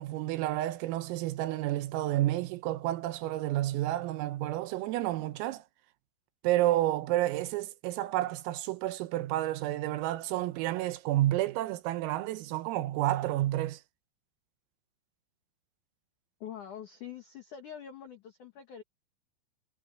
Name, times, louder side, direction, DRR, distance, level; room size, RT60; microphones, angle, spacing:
voice 1, 0.0-5.6 6.4-13.8, right 15 dB, 85° right, 3.8 m, -30 dB
voice 2, 16.4-18.8, left 9 dB, 60° left, 2.3 m, -44 dB
omnidirectional pair, 6.0 m